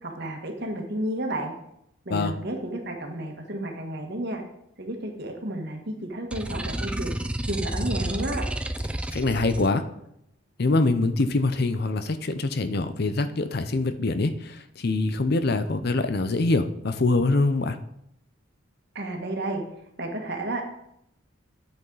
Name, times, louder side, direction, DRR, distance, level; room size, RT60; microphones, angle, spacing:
voice 1, 0.0-1.5 2.0-4.4 4.8-7.1 7.5-8.4 18.9-19.6 20.0-20.7, right 1 dB, 50° right, 2 dB, 1.6 m, -31 dB
sound 1, 6.3-9.7, right 1 dB, 5° right, 0.4 m, -30 dB
voice 2, 9.1-9.8 10.6-17.8, left 2 dB, 50° left, 11 dB, 0.6 m, -24 dB
10.5 x 7.9 x 4.0 m, 0.77 s
head